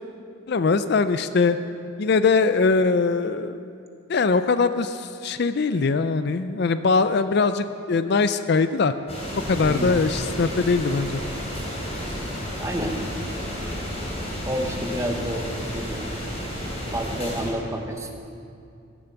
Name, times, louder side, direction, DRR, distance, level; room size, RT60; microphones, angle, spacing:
voice 1, 0.5-1.6 2.0-3.6 4.1-8.9 9.5-11.2, left 4 dB, 50° left, 11 dB, 0.4 m, -21 dB
sound 1, 9.1-17.5, equal, 30° left, 3.5 m, -31 dB
voice 2, 9.6-10.0 12.6-13.0 13.3-13.9 14.5-15.5 15.7-16.2 16.9-18.1, equal, 15° right, 3 dB, 1.0 m, -30 dB
15.5 x 8.8 x 6.8 m, 2.5 s
head